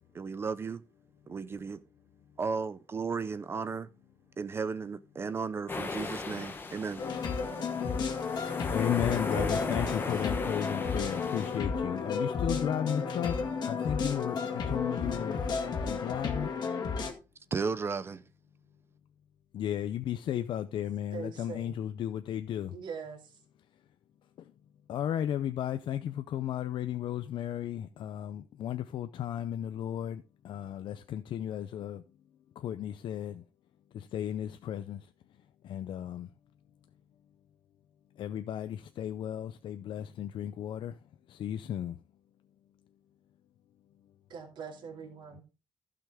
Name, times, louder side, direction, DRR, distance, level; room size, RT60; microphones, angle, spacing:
voice 1, 0.1-0.8 1.3-1.8 2.4-3.9 4.4-7.0 17.5-18.2, right 5 dB, 30° right, 0.5 m, -34 dB
sound 1, 5.7-11.6, left 3 dB, 25° left, 1.1 m, -38 dB
sound 2, 7.0-17.1, left 5 dB, 55° left, 2.0 m, -32 dB
voice 2, 8.7-13.4 13.6-15.4 15.8-16.5 19.5-22.8 24.4-24.5 24.9-32.0 32.6-33.4 33.9-35.1 35.6-36.3 38.2-41.0 41.3-42.0, left 10 dB, 75° left, 0.5 m, -34 dB
voice 3, 9.3-10.1 21.1-21.8 22.7-23.4 44.3-45.4, right 5 dB, 65° right, 2.5 m, -42 dB
15.0 x 5.8 x 3.6 m
wide cardioid pair, 175°, 8 cm